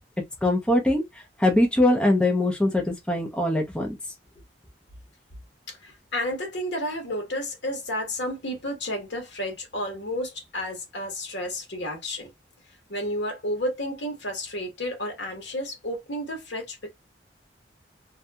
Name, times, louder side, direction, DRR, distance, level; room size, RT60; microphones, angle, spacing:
voice 1, 0.4-1.0 1.4-3.9, left 1 dB, 5° left, 0.5 m, -22 dB
voice 2, 5.7-12.3 12.9-16.9, left 1 dB, 80° left, 1.1 m, -31 dB
2.7 x 2.6 x 2.2 m
head